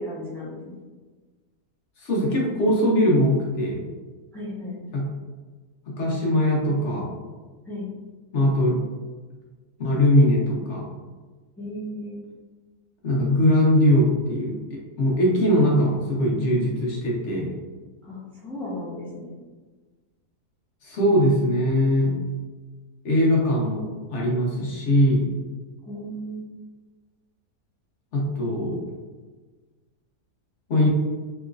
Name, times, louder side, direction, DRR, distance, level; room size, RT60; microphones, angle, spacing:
voice 1, 0.1-0.7 4.3-4.9 7.6-7.9 11.6-12.2 18.0-19.3 25.8-26.4, left 1 dB, ahead, -11 dB, 0.6 m, -35 dB
voice 2, 2.0-3.8 4.9-5.1 5.9-7.1 8.3-8.8 9.8-10.8 13.0-17.5 20.8-22.2 23.0-25.3 28.1-28.8 30.7-30.9, left 1 dB, 55° left, -4 dB, 1.0 m, -21 dB
3.4 x 3.0 x 2.4 m, 1.3 s
omnidirectional pair, 1.7 m